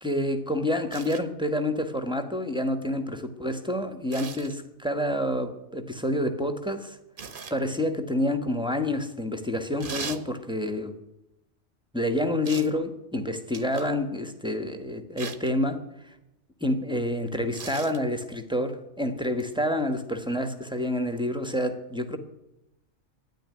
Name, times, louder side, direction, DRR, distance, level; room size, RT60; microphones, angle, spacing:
voice 1, 0.0-7.0 7.5-10.9 11.9-16.1 16.6-22.2, left 1 dB, 5° right, 7 dB, 1.2 m, -28 dB
sound 1, 0.9-1.2 4.1-4.5 7.2-7.6 9.8-10.2 12.5-12.8 13.5-13.9 15.2-15.5 17.5-18.0 19.4-19.5, right 5 dB, 45° right, 1.2 m, -38 dB
13.0 x 10.0 x 9.6 m, 0.91 s
omnidirectional pair, 1.3 m